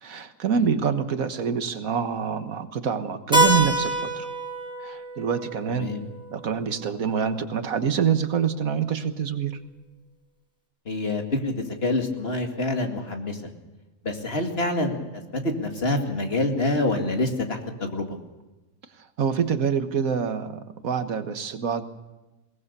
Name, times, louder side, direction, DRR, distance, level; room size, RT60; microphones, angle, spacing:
voice 1, 0.0-4.3 4.8-5.9 6.3-9.5 19.2-21.8, right 7 dB, 80° right, 9 dB, 1.7 m, -26 dB
Keyboard (musical), 3.3-7.8, right 1 dB, 5° right, 4.7 m, -27 dB
voice 2, 10.9-11.5 11.8-13.4 14.0-15.0 15.6-18.1, left 2 dB, 45° left, 3 dB, 2.4 m, -26 dB
21.5 x 19.0 x 6.8 m, 1.1 s
omnidirectional pair, 1.5 m